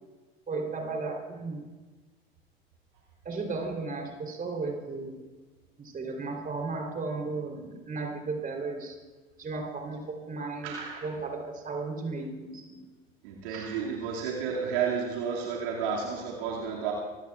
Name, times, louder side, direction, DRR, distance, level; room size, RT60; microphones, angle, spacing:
voice 1, 0.5-1.6 3.3-5.2 5.8-9.0 9.4-10.8 11.0-12.8 13.5-13.7, right 3 dB, 30° right, 2 dB, 3.6 m, -35 dB
voice 2, 10.6-11.0 13.2-16.9, right 6 dB, 65° right, -3 dB, 2.4 m, -31 dB
25.0 x 17.0 x 2.5 m, 1.3 s
figure-of-eight pair, 65°, 30 cm